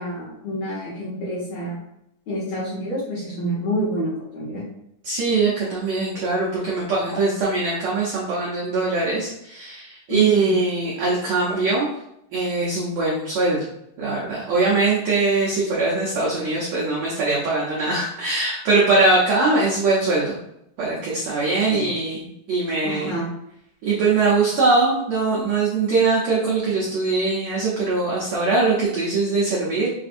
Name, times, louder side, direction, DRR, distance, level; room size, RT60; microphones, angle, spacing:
voice 1, 0.0-1.8 2.3-4.6 10.1-10.5 21.7-21.9 22.8-23.3, equal, 60° left, -9 dB, 1.8 m, -28 dB
voice 2, 5.0-11.9 12.3-13.6 14.0-20.4 20.8-23.1 23.8-29.9, right 3 dB, 80° right, -6 dB, 1.5 m, -21 dB
6.3 x 2.5 x 2.5 m, 0.78 s
omnidirectional pair, 4.2 m